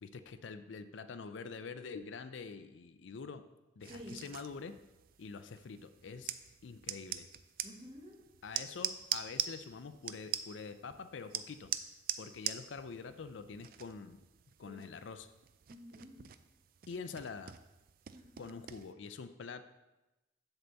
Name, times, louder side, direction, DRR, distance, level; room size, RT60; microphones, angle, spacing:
voice 1, 0.0-3.4 3.8-4.8 5.2-6.3 6.6-7.3 8.4-11.7 12.2-14.2 14.6-15.3 16.9-17.6 18.4-19.6, left 5 dB, 75° left, 11 dB, 0.5 m, -46 dB
sound 1, 3.8-18.9, right 10 dB, 50° right, 0.4 m, -44 dB
voice 2, 3.9-4.2 7.6-8.2 14.7-14.8 15.7-16.2 18.1-18.6, equal, 30° right, 0 dB, 1.3 m, -50 dB
7.9 x 4.1 x 6.8 m, 1.0 s
head